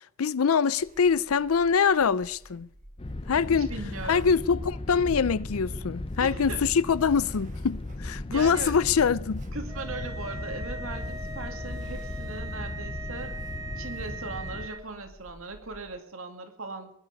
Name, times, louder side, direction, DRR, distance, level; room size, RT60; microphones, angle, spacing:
voice 1, 0.2-2.7 3.3-3.7 4.1-9.4, left 6 dB, 85° left, 0.5 m, -24 dB
sound 1, 0.8-16.0, right 1 dB, 35° right, 1.4 m, -52 dB
sound 2, 3.0-14.7, left 2 dB, 25° left, 0.6 m, -36 dB
voice 2, 3.5-4.4 6.2-6.7 8.3-8.8 9.5-13.4 13.8-16.9, right 3 dB, 75° right, 2.4 m, -39 dB
sound 3, 9.7-14.8, right 3 dB, 15° right, 1.6 m, -41 dB
21.5 x 11.0 x 5.3 m
head